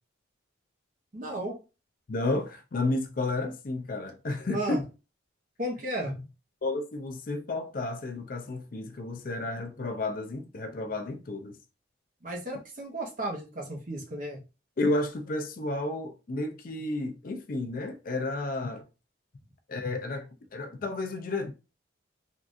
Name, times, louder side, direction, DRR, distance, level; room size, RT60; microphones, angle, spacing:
voice 1, 1.1-1.6 4.5-4.8 5.6-6.1 12.2-14.4, right 1 dB, 45° right, 0.8 m, -34 dB
voice 2, 2.1-4.8 6.6-11.6 14.8-18.8 19.7-21.5, left 2 dB, 45° left, 0.4 m, -32 dB
3.5 x 2.4 x 2.5 m
head